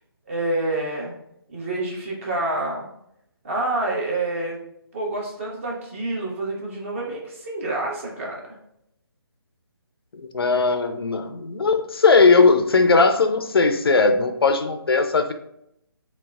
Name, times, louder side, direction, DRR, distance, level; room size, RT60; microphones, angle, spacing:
voice 1, 0.3-1.1 1.5-2.9 3.4-4.6 4.9-8.4, right 2 dB, 30° right, -2 dB, 0.8 m, -27 dB
voice 2, 10.1-15.3, left 4 dB, 70° left, 8 dB, 0.4 m, -18 dB
3.9 x 2.0 x 2.3 m, 0.76 s
figure-of-eight pair, 145°, 13 cm